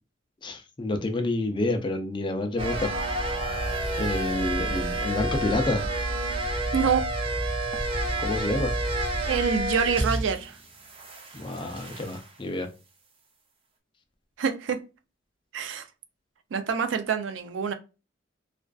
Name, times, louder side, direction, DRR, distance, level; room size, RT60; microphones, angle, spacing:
voice 1, 0.4-2.9 4.0-5.9 8.2-8.7 11.3-12.7, left 2 dB, 25° left, 0.4 m, -28 dB
sound 1, 2.6-10.5 10.7-12.3, right 1 dB, 30° right, 0.5 m, -29 dB
voice 2, 6.7-7.1 9.3-10.6 14.4-14.8 15.5-15.8 16.5-17.7, right 6 dB, 75° right, 0.4 m, -26 dB
2.4 x 2.3 x 2.2 m
head